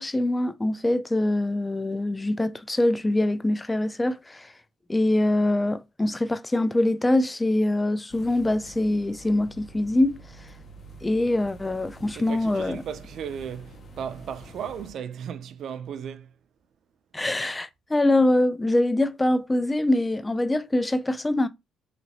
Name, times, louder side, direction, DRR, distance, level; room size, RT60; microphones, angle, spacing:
voice 1, 0.0-4.5 4.9-10.2 11.0-12.8 17.1-21.5, left 1 dB, 15° left, 0.3 m, -24 dB
sound 1, 8.1-14.9, right 2 dB, 50° left, 0.7 m, -47 dB
voice 2, 12.1-16.3, right 8 dB, 70° right, 0.4 m, -36 dB
3.0 x 2.9 x 2.7 m
cardioid pair, 90°, 0 cm